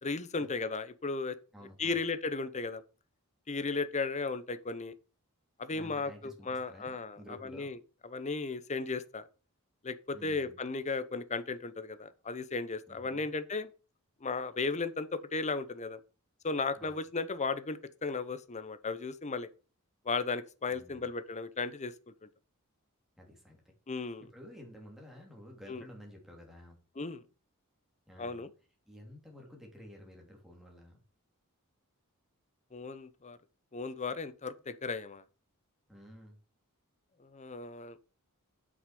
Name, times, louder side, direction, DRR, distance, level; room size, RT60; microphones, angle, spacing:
voice 1, 0.0-1.4 1.8-2.8 3.5-4.9 5.6-7.8 8.0-9.2 9.8-13.7 14.2-16.0 16.4-19.5 20.0-21.9 22.2-22.3 23.9-24.2 25.7-25.8 27.0-27.2 28.2-28.5 32.7-33.4 33.7-35.2 37.2-38.0, left 4 dB, 30° left, 0.7 m, -35 dB
voice 2, 1.5-2.0 5.7-7.7 10.1-10.6 12.9-13.3 16.7-17.0 20.7-21.1 23.2-23.6 24.2-26.8 28.1-28.5 28.9-31.0 35.9-36.4, equal, ahead, 3.1 m, -52 dB
7.9 x 6.2 x 5.3 m
head